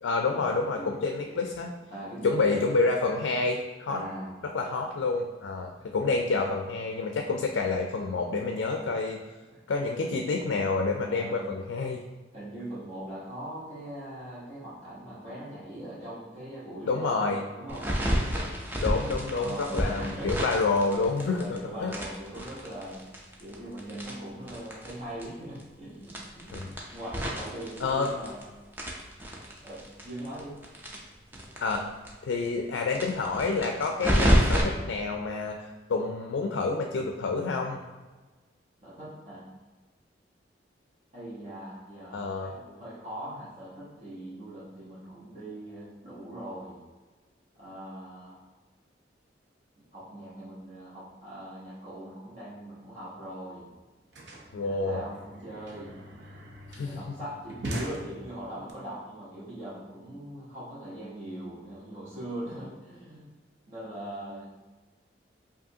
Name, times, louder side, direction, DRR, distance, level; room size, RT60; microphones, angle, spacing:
voice 1, 0.0-1.7 2.2-4.0 4.4-9.2 9.7-12.0 16.9-17.4 18.8-22.0 26.5-26.7 27.8-28.1 31.6-31.8 32.2-37.8 42.1-42.5 54.5-55.0 56.7-57.1, left 3 dB, 85° left, 3 dB, 0.4 m, -28 dB
voice 2, 1.9-2.6 3.9-4.3 6.2-6.3 9.5-9.6 11.0-11.4 12.3-17.9 19.4-20.5 20.9-23.0 23.4-28.4 29.6-30.6 38.8-39.5 41.1-46.8 47.5-48.4 49.9-53.7 54.6-56.0 56.7-63.3 63.7-64.5, right 1 dB, 35° right, -9 dB, 1.1 m, -41 dB
sound 1, 17.7-21.6 21.9-24.9 25.2-25.3 25.5-25.6 26.0-28.4 28.7-31.8 32.0-32.1 32.4-32.5 32.9-34.6, equal, 10° right, 0.5 m, -28 dB
sound 2, 53.2-53.3 53.5-58.7, right 1 dB, 65° right, 0.6 m, -41 dB
4.8 x 2.6 x 2.7 m, 1.3 s
head